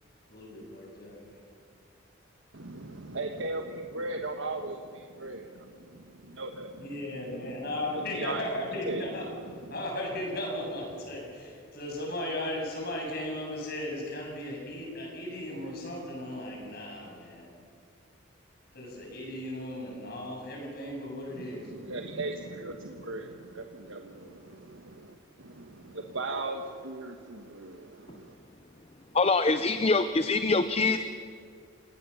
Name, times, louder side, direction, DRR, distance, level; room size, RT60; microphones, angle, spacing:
voice 1, 0.3-1.2 6.8-9.2 9.7-17.5 18.7-21.7, left 1 dB, 45° left, -1 dB, 7.5 m, -36 dB
voice 2, 2.5-8.5 8.8-9.8 21.3-28.4, right 2 dB, 70° right, 4 dB, 1.3 m, -38 dB
voice 3, 29.1-31.1, left 3 dB, 30° left, 10 dB, 0.6 m, -24 dB
29.5 x 18.5 x 7.1 m, 2.3 s
head